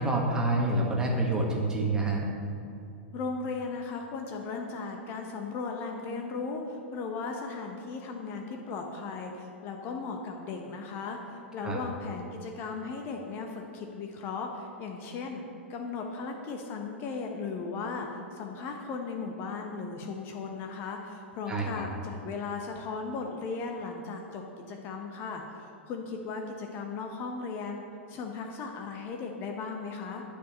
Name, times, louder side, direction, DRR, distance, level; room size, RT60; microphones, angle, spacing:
voice 1, 0.0-2.3 11.6-11.8 21.5-21.8, right 2 dB, 10° right, -1 dB, 1.4 m, -27 dB
voice 2, 3.1-15.4 15.7-24.4 24.7-27.8 28.1-30.2, left 4 dB, 30° left, 3 dB, 0.9 m, -37 dB
10.0 x 5.0 x 6.8 m, 2.6 s
figure-of-eight pair, 105°, 7 cm